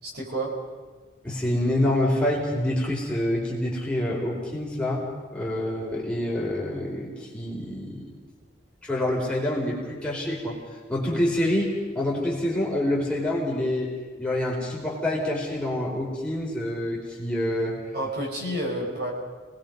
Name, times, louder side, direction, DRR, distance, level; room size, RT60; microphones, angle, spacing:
voice 1, 0.0-0.5 17.9-19.1, right 1 dB, 55° right, -1 dB, 5.3 m, -30 dB
voice 2, 1.2-5.0 5.3-8.1 8.8-10.6 10.9-13.9 14.2-17.8, left 1 dB, 5° left, -4 dB, 4.6 m, -27 dB
29.5 x 20.0 x 5.4 m, 1.4 s
head